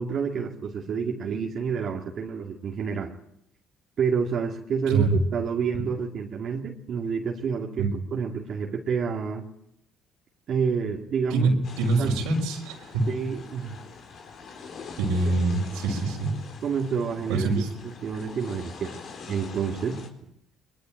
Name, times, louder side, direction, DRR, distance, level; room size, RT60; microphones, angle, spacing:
voice 1, 0.0-3.1 4.0-9.5 10.5-11.5 12.0-12.1 13.1-13.8 15.3-15.4 16.6-17.5 18.0-19.0 19.3-20.0, right 6 dB, 55° right, 0 dB, 2.4 m, -29 dB
voice 2, 11.3-13.1 15.0-16.3 17.3-17.7, right 3 dB, 85° right, -2 dB, 4.3 m, -25 dB
sound 1, 11.6-20.1, left 5 dB, 60° left, 4.2 m, -44 dB
22.0 x 21.0 x 9.0 m, 0.77 s
supercardioid pair, 70°, 0 cm